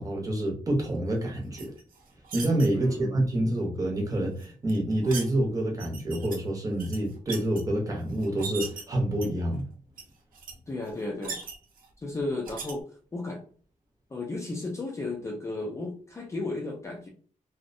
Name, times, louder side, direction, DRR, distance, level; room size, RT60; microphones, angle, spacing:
voice 1, 0.0-1.7 2.3-9.7, right 1 dB, 25° right, -1 dB, 0.7 m, -27 dB
sound 1, 1.6-2.7 4.4-5.3 5.8-6.4 6.7-7.6 8.2-8.8 9.2-9.6 10.0-10.1 10.3-10.5 10.9-11.9 12.4-12.7, right 5 dB, 80° right, 0.6 m, -38 dB
voice 2, 2.7-3.2 10.7-11.4 12.0-12.9 13.1-13.4 14.1-17.1, left 2 dB, 20° left, 0 dB, 0.4 m, -34 dB
2.6 x 2.0 x 2.5 m, 0.43 s
wide cardioid pair, 170°, 14 cm